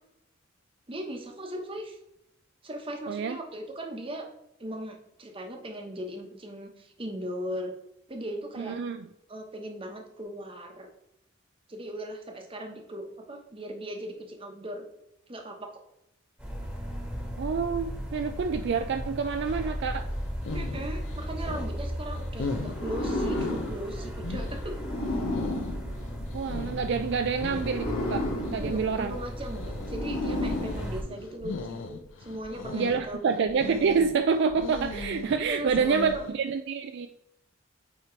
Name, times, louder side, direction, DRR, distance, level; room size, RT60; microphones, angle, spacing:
voice 1, 0.9-2.0 2.6-4.3 4.6-7.7 8.1-8.8 9.3-10.9 11.7-14.8 15.3-15.8 20.5-24.8 28.4-33.5 35.4-36.3, equal, 25° right, 3 dB, 1.0 m, -38 dB
voice 2, 3.1-3.4 8.6-9.0 17.4-20.1 26.3-28.2 28.5-29.2 32.7-37.1, right 5 dB, 55° right, 7 dB, 0.3 m, -27 dB
sound 1, 16.4-31.0, equal, 5° right, 1.3 m, -36 dB
sound 2, 20.1-36.3, left 3 dB, 65° left, 0.5 m, -39 dB
sound 3, 22.7-26.8 27.5-31.5, left 1 dB, 90° left, 1.4 m, -33 dB
8.7 x 3.0 x 4.3 m, 0.84 s
head